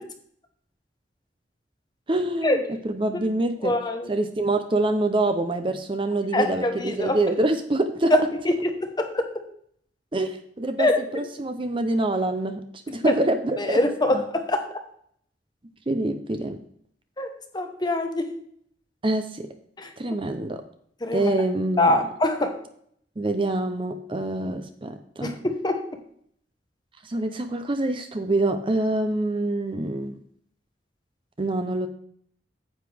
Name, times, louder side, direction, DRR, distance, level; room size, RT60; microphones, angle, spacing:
voice 1, 2.1-3.7 4.1-8.1 10.1-13.8 14.1-14.2 15.9-16.6 19.0-19.5 20.0-20.6 21.1-22.0 23.2-25.3 27.0-30.2 31.4-31.9, right 2 dB, 30° right, 8 dB, 0.6 m, -26 dB
voice 2, 3.6-4.1 6.3-7.2 8.1-9.3 10.8-11.0 13.1-13.2 13.6-14.6 17.2-18.3 19.8-19.9 21.0-21.3 21.8-22.6 25.2-25.8, left 1 dB, 25° left, 6 dB, 1.1 m, -24 dB
9.5 x 8.0 x 3.5 m, 0.64 s
head